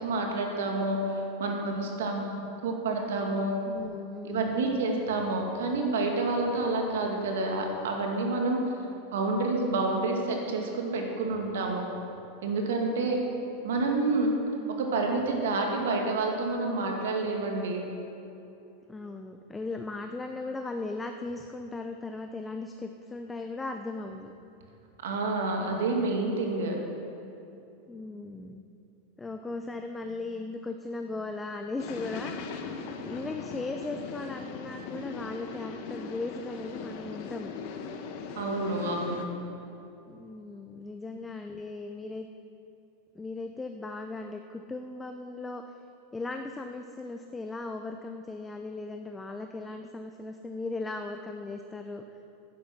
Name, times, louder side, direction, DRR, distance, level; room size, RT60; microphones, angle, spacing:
voice 1, 0.0-2.3 2.6-3.6 4.2-8.6 9.1-11.9 12.4-13.2 13.6-14.3 14.8-17.9 25.0-26.8 38.4-39.4, right 3 dB, 85° right, 1 dB, 2.2 m, -28 dB
voice 2, 3.7-4.8 13.2-13.3 18.9-24.3 27.9-28.7 29.2-32.6 32.8-37.5 40.1-42.3 43.1-45.7 46.1-52.0, left 3 dB, 10° left, 5 dB, 0.6 m, -37 dB
sound 1, 31.8-39.3, left 5 dB, 55° left, 1.2 m, -39 dB
11.0 x 10.0 x 6.0 m, 2.8 s
supercardioid pair, 130°, 0 cm